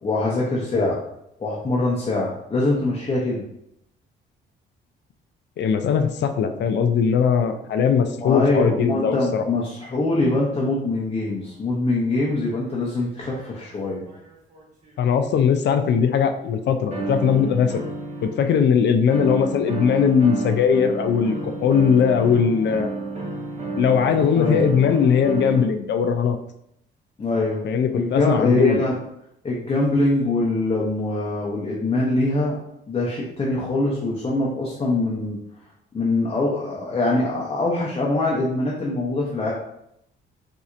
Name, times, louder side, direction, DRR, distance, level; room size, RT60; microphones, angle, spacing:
voice 1, 0.0-1.0 1.4-3.4 8.2-14.0 24.4-24.6 27.2-27.7 27.9-29.0 29.4-32.6 32.9-35.4 35.9-39.5, left 2 dB, 30° left, -4 dB, 0.8 m, -23 dB
voice 2, 5.6-9.4 15.0-17.8 18.2-22.9 23.7-26.4 27.6-28.8, left 7 dB, 65° left, 7 dB, 0.4 m, -20 dB
sound 1, 11.4-11.5 12.6-13.7 14.1-15.0 16.9-18.4 19.1-25.7, right 3 dB, 35° right, 1.2 m, -32 dB
4.1 x 2.7 x 2.5 m, 0.77 s
cardioid pair, 90°, 20 cm